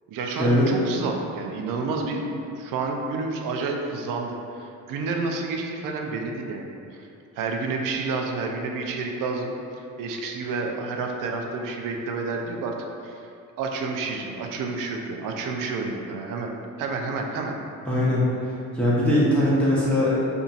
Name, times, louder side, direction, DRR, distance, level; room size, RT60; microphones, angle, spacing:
voice 1, 0.1-6.7 6.9-7.1 7.4-12.7 13.0-13.3 13.6-16.5 16.8-17.6, right 3 dB, 55° right, 2 dB, 0.5 m, -29 dB
voice 2, 17.9-18.3 18.7-20.2, left 1 dB, 5° left, -9 dB, 0.8 m, -20 dB
2.7 x 2.5 x 2.4 m, 2.5 s
hypercardioid pair, 55°, 39 cm